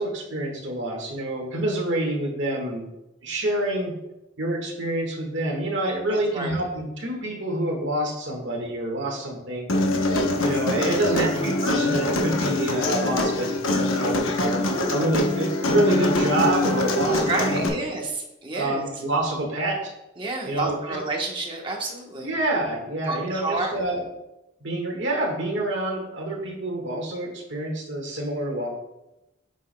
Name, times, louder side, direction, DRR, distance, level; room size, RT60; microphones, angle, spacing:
voice 1, 0.0-2.9 3.2-3.9 4.4-9.7 10.4-17.7 18.6-19.9 20.4-20.7 22.2-24.0 24.6-28.7, right 1 dB, 65° right, 0 dB, 1.6 m, -27 dB
voice 2, 6.1-6.6 17.2-18.8 20.2-22.3 23.1-23.7, right 2 dB, 25° right, 0 dB, 1.1 m, -30 dB
Human voice, 9.7-17.7, left 2 dB, 90° left, 0.9 m, -24 dB
7.9 x 5.9 x 2.2 m, 0.91 s
head